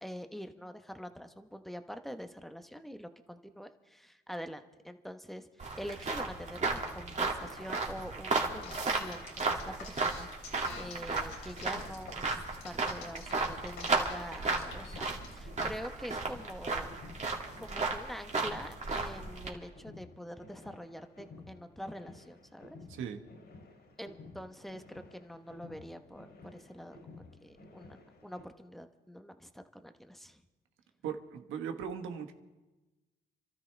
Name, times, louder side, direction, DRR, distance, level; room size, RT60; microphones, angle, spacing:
voice 1, 0.0-16.9 17.6-22.8 24.0-30.4, equal, ahead, 7 dB, 1.1 m, -45 dB
sound 1, 5.6-19.5, right 3 dB, 35° right, 2.5 m, -34 dB
sound 2, 8.6-15.3, left 5 dB, 80° left, 3.4 m, -47 dB
sound 3, 14.6-28.5, left 3 dB, 60° left, 3.6 m, -54 dB
voice 2, 22.9-23.2 31.0-32.3, right 7 dB, 85° right, 5 dB, 1.5 m, -38 dB
29.0 x 13.0 x 3.4 m, 1.1 s
cardioid pair, 90°, 20 cm